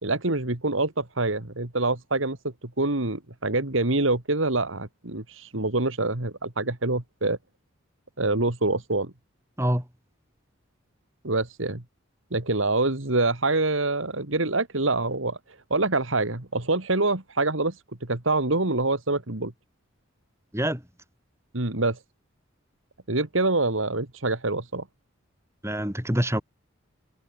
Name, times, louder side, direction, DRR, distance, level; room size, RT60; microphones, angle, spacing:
voice 1, 0.0-2.4 2.8-7.4 8.2-9.1 11.2-11.8 12.3-15.4 15.7-17.8 18.0-19.5 21.5-22.0 23.1-24.8, right 2 dB, 70° right, 2.5 m, -25 dB
voice 2, 25.6-26.4, equal, 15° right, 7.5 m, -25 dB
head